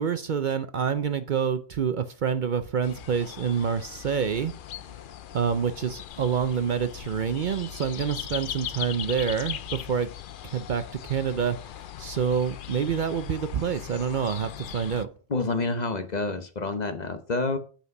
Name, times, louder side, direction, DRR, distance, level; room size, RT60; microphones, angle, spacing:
voice 1, 0.0-4.5 5.3-10.1 10.4-15.1, right 7 dB, 55° right, 0.7 m, -27 dB
sound 1, 2.8-15.1, left 11 dB, 60° left, 0.6 m, -39 dB
voice 2, 15.3-17.6, left 3 dB, 45° left, 0.9 m, -28 dB
8.4 x 5.9 x 5.3 m
omnidirectional pair, 1.1 m